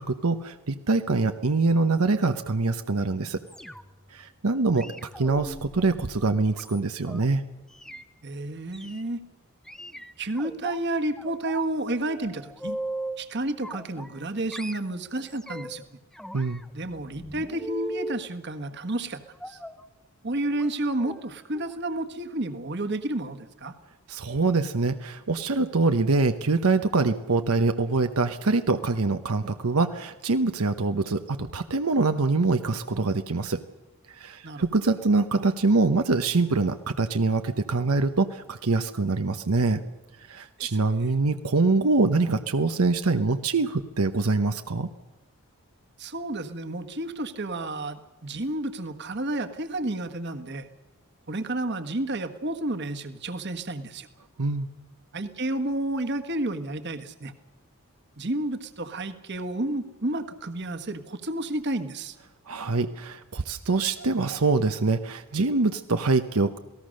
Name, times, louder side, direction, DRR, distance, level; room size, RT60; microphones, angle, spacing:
voice 1, 0.0-3.4 4.1-7.4 16.3-16.6 24.1-33.6 34.1-39.8 40.3-44.9 54.4-54.7 62.5-66.6, right 3 dB, 80° right, 8 dB, 0.9 m, -24 dB
sound 1, 3.5-4.1 4.8-7.2 7.7-8.0 8.7-9.0 9.7-10.8 11.2-11.7 12.0-13.2 13.6-14.3 14.5-15.8 16.1-18.2 19.4-19.8 20.5-20.7 21.0-21.2 21.5-21.7 22.0-22.1, right 1 dB, ahead, 0.7 m, -39 dB
voice 2, 8.2-9.2 10.2-12.8 13.2-15.8 16.7-19.6 20.2-23.7 34.4-34.6 40.6-41.1 46.0-50.7 51.3-54.1 55.1-57.3 58.2-62.1, right 1 dB, 50° right, 9 dB, 1.5 m, -31 dB
28.0 x 18.5 x 6.5 m, 1.1 s
head